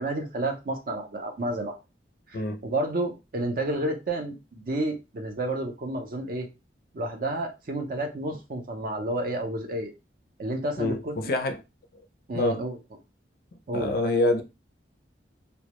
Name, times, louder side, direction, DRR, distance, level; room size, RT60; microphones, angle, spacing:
voice 1, 0.0-1.8 2.3-6.5 6.9-9.9 10.4-11.3 12.3-12.8 13.7-13.9, right 1 dB, 50° right, 0.5 m, -30 dB
voice 2, 2.3-2.6 10.8-11.6 11.9-12.0 12.3-12.7 13.7-14.4, left 2 dB, 55° left, 0.4 m, -26 dB
2.1 x 2.0 x 2.9 m
head